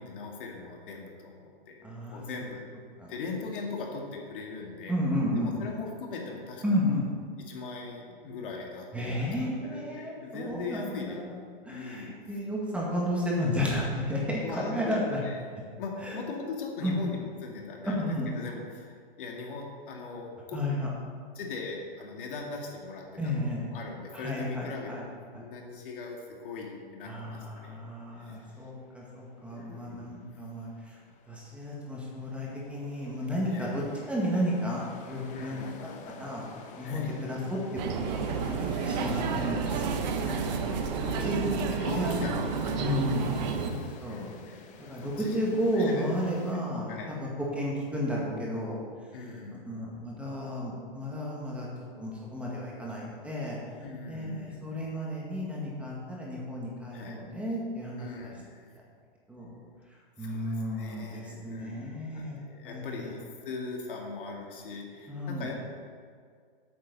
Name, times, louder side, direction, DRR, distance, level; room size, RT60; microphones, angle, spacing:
voice 1, 0.0-2.7 3.1-5.0 5.3-6.8 7.5-12.2 14.2-15.4 15.8-18.0 18.3-20.6 21.3-23.4 23.7-24.9 25.3-27.8 28.2-28.6 29.5-30.3 33.5-33.8 35.3-35.8 36.8-37.2 38.8-39.4 40.2-41.3 41.6-43.2 44.0-44.6 44.9-45.4 45.7-46.1 46.9-47.1 49.1-49.7 53.8-54.8 56.9-57.3 58.0-58.7 60.2-65.7, left 4 dB, 65° left, 0 dB, 2.3 m, -40 dB
voice 2, 1.8-2.2 3.0-3.1 4.9-5.6 6.6-7.1 8.9-11.4 11.6-15.2 16.0-16.2 16.8-17.0 17.9-18.3 20.5-20.9 23.2-23.7 24.1-25.0 25.3-25.4 27.1-31.0 31.3-33.8 34.1-35.6 36.2-36.4 36.8-37.6 38.0-38.5 38.8-40.0 41.0-41.5 41.9-42.2 42.8-43.3 43.7-44.2 44.8-48.8 49.5-51.7 52.0-53.6 54.1-58.3 59.3-59.5 60.2-63.1 65.1-65.5, equal, 5° right, -4 dB, 2.0 m, -32 dB
sound 1, 28.4-46.5, left 5 dB, 25° left, 0.9 m, -49 dB
sound 2, 37.8-43.7, right 6 dB, 50° right, 1.2 m, -31 dB
12.0 x 8.6 x 4.2 m, 2.1 s
hypercardioid pair, 135°, 29 cm